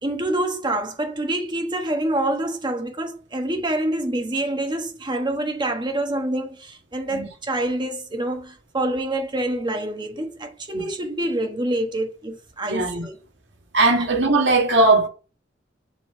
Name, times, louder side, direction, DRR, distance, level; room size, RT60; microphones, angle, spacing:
voice 1, 0.0-13.2 14.0-14.1, right 1 dB, 25° right, 1.2 m, -26 dB
voice 2, 12.7-13.1 13.7-15.1, right 2 dB, 70° right, 1.9 m, -18 dB
7.0 x 3.8 x 5.6 m
head